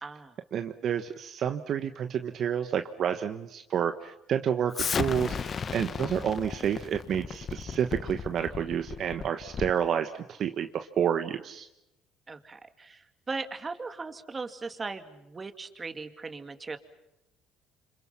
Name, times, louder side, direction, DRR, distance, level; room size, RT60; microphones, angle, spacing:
voice 1, 0.0-0.3 12.3-16.8, right 4 dB, 25° right, 8 dB, 2.3 m, -38 dB
voice 2, 0.5-11.7, right 8 dB, 55° right, 8 dB, 1.2 m, -29 dB
Explosion, 4.7-9.9, left 6 dB, 40° left, 1.0 m, -35 dB
29.0 x 26.0 x 5.8 m, 0.89 s
cardioid pair, 95°, 0 cm